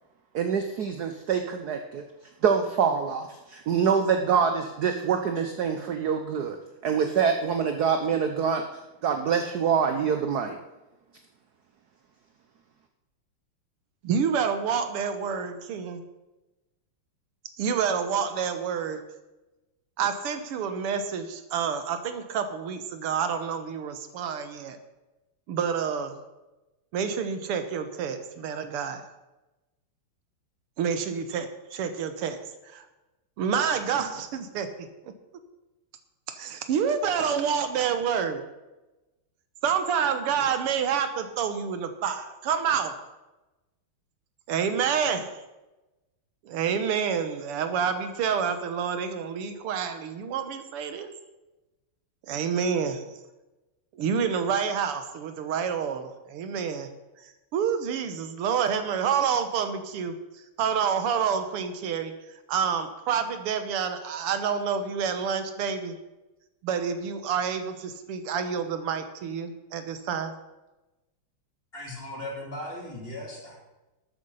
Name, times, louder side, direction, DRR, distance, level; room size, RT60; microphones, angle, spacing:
voice 1, 0.3-2.0 2.4-6.6 6.8-8.6 9.0-10.6, right 6 dB, 60° right, 6 dB, 1.1 m, -25 dB
voice 2, 14.0-16.0 17.6-19.0 20.0-24.8 25.5-26.2 26.9-29.0 30.8-32.4 32.7-32.9 33.4-35.1 36.3-38.4 39.6-42.9 44.5-45.3 46.4-51.1 52.3-53.0 53.9-56.9 57.2-62.1 62.5-66.0 66.6-70.3, right 7 dB, 90° right, 9 dB, 2.0 m, -28 dB
voice 3, 71.7-73.5, left 1 dB, 25° left, -2 dB, 3.4 m, -37 dB
13.0 x 8.6 x 5.6 m, 1.0 s
omnidirectional pair, 2.4 m